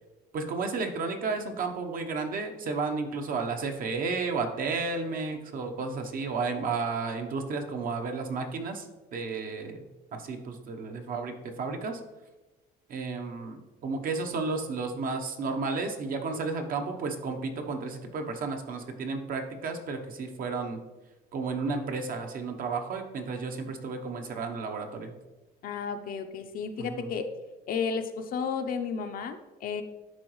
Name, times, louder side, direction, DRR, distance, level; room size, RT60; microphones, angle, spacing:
voice 1, 0.3-8.9 9.1-9.8 10.1-12.0 12.9-20.8 21.3-25.1 26.8-27.1, right 4 dB, 55° right, 4 dB, 0.9 m, -32 dB
voice 2, 25.6-27.2 27.7-29.8, left 6 dB, 60° left, 7 dB, 0.7 m, -32 dB
10.5 x 3.9 x 3.1 m, 1.1 s
cardioid pair, 110°, 17 cm